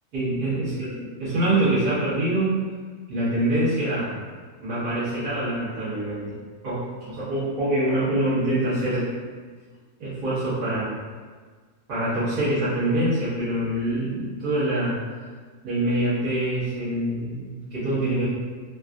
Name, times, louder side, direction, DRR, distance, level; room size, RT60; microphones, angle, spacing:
voice 1, 0.1-0.9 1.2-2.5 3.1-4.2 4.6-9.1 10.0-10.9 11.9-15.0 15.6-18.2, right 1 dB, 80° right, -13 dB, 1.7 m, -25 dB
4.0 x 2.3 x 2.5 m, 1.5 s
omnidirectional pair, 1.6 m